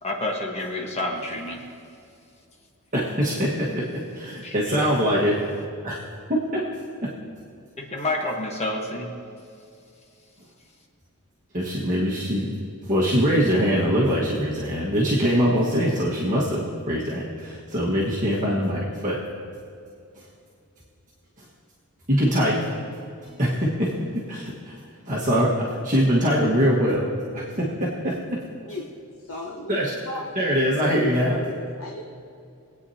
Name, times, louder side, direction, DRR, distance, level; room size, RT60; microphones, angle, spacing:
voice 1, 0.0-1.6 4.4-4.9 7.8-9.1, left 2 dB, 30° left, 1 dB, 1.2 m, -29 dB
voice 2, 2.9-3.8 4.1-5.6 5.8-6.0 6.3-6.6 7.0-7.1 11.5-12.5 12.8-19.2 22.1-22.7 23.2-23.9 24.3-24.8 25.1-28.1 29.7-29.9 30.3-31.4, equal, 35° right, -6 dB, 1.5 m, -23 dB
voice 3, 29.2-30.2 31.3-32.0, left 1 dB, 65° left, -1 dB, 0.9 m, -35 dB
21.5 x 8.9 x 2.8 m, 2.4 s
head